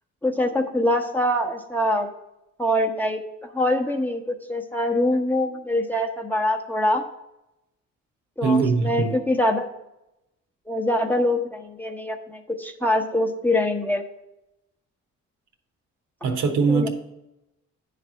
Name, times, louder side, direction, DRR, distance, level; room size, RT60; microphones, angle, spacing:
voice 1, 0.2-2.1 2.6-3.2 3.5-7.0 8.4-9.7 10.7-14.0 16.7-16.9, left 1 dB, 5° left, 0.8 m, -24 dB
voice 2, 8.4-9.2 16.2-16.9, right 4 dB, 80° right, 1.0 m, -21 dB
9.7 x 3.3 x 6.1 m
cardioid pair, 90°, 30 cm